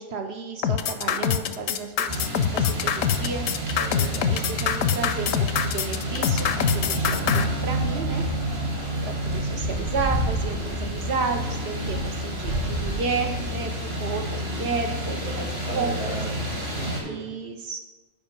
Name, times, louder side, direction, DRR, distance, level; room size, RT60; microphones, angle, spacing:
voice 1, 0.0-3.4 4.3-8.2 9.2-15.5 15.7-16.2 17.0-17.8, right 4 dB, 55° right, 4 dB, 0.9 m, -32 dB
sound 1, 0.6-7.4, left 9 dB, 70° left, 0.9 m, -24 dB
sound 2, 2.1-17.0, right 1 dB, 40° right, 1.9 m, -29 dB
voice 2, 3.8-4.4 15.2-16.3 16.5-17.3, right 1 dB, 85° right, -5 dB, 2.6 m, -36 dB
9.5 x 5.0 x 5.2 m, 1.2 s
omnidirectional pair, 1.5 m